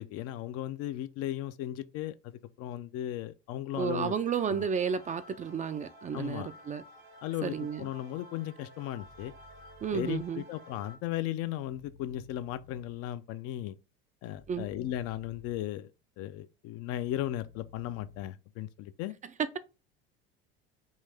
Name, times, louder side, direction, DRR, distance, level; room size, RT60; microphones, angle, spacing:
voice 1, 0.0-4.1 4.5-4.7 6.1-6.5 7.2-9.3 9.9-13.8 14.2-15.9 16.2-19.1, left 13 dB, 50° left, 0.5 m, -36 dB
voice 2, 3.7-6.8 7.4-7.8 9.8-10.5 14.5-14.7 19.4-19.6, right 7 dB, 25° right, 0.4 m, -32 dB
sound 1, 3.7-11.0, equal, 75° right, 1.7 m, -53 dB
sound 2, 8.9-10.3 11.6-12.9 14.3-15.6 16.9-18.2, left 3 dB, 90° left, 1.4 m, -56 dB
5.5 x 2.6 x 3.3 m
hypercardioid pair, 80°, 30 cm